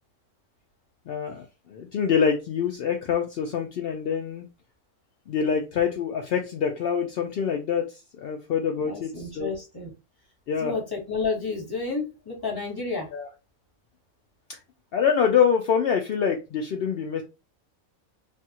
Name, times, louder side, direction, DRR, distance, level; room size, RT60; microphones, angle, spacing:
voice 1, 1.1-4.5 5.3-9.5 10.5-10.7 13.1-13.3 14.5-14.6 14.9-17.2, left 7 dB, 70° left, 0.5 m, -25 dB
voice 2, 8.8-9.9 10.6-13.1, left 4 dB, 20° left, 1.0 m, -31 dB
3.3 x 2.3 x 2.8 m
omnidirectional pair, 1.5 m